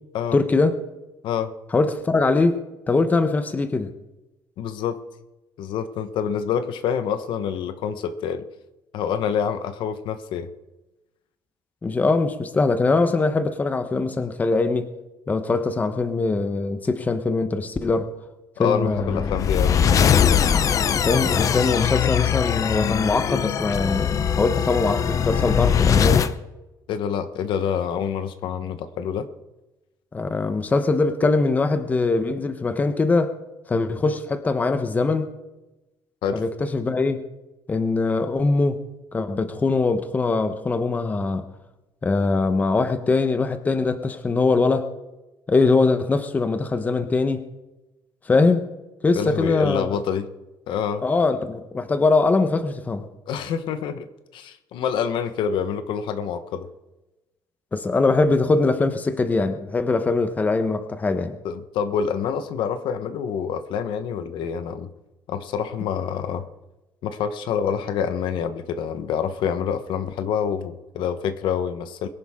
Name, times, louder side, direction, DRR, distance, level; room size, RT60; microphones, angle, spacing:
voice 1, 0.3-0.8 1.7-2.6 2.9-3.9 11.8-14.9 15.3-18.1 18.6-19.3 20.9-26.3 30.1-33.3 33.7-35.3 36.3-37.2 37.7-38.8 39.1-41.5 42.0-44.9 45.5-47.4 48.3-48.7 49.0-50.0 51.0-53.0 57.7-61.4, left 3 dB, 20° left, 9 dB, 1.0 m, -22 dB
voice 2, 4.6-5.0 5.6-8.4 8.9-10.5 18.6-20.1 26.9-29.3 36.2-36.4 49.1-50.3 50.7-51.0 53.3-54.1 54.3-56.7 61.4-64.9 65.3-66.5 67.0-72.1, left 7 dB, 80° left, 10 dB, 1.1 m, -27 dB
sound 1, 18.9-26.3, left 8 dB, 40° left, 0.7 m, -21 dB
22.0 x 11.0 x 3.7 m, 1.0 s
cardioid pair, 160°, 8 cm